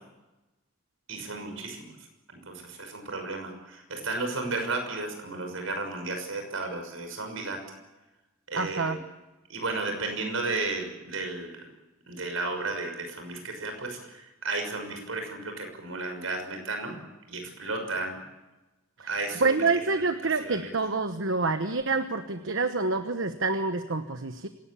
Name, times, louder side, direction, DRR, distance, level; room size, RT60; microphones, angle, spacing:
voice 1, 1.1-1.9 2.5-7.6 8.5-9.0 9.5-11.7 12.1-17.0 17.3-18.1 19.1-19.6 19.9-20.1 20.4-20.7, right 3 dB, 85° right, 5 dB, 6.2 m, -33 dB
voice 2, 8.5-9.0 19.0-24.5, right 3 dB, 70° right, 8 dB, 1.2 m, -27 dB
26.0 x 18.0 x 8.7 m, 1.1 s
head